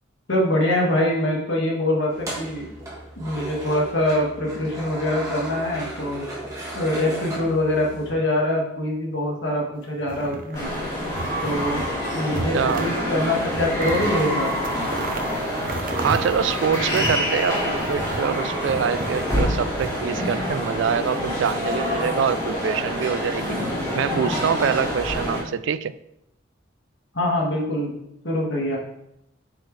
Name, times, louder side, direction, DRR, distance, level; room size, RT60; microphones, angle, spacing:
voice 1, 0.3-2.7 3.2-6.3 6.7-10.7 11.4-11.8 12.1-14.5 27.1-28.0 28.2-28.8, left 1 dB, 65° left, 1.8 m, -24 dB
sound 1, 2.1-8.1, right 1 dB, 15° right, 1.5 m, -35 dB
sound 2, 10.0-10.8 11.2-11.9 12.3-13.0 13.3-18.3 18.7-19.9, right 2 dB, 45° right, 0.7 m, -33 dB
sound 3, 10.5-25.4, equal, 20° left, 2.2 m, -26 dB
voice 2, 12.5-12.9 16.0-23.6 23.9-25.9, right 7 dB, 65° right, 0.3 m, -25 dB
8.0 x 4.8 x 3.3 m
head